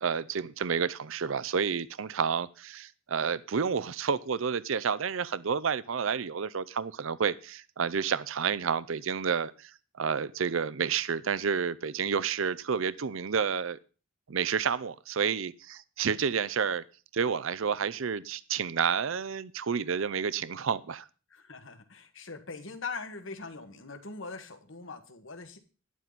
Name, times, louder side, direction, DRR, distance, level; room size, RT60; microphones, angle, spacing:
voice 1, 0.0-13.8 14.3-16.8 17.1-21.1, right 6 dB, 70° right, 0.5 m, -30 dB
voice 2, 21.3-25.6, left 4 dB, 65° left, 1.6 m, -41 dB
12.0 x 10.5 x 4.1 m
head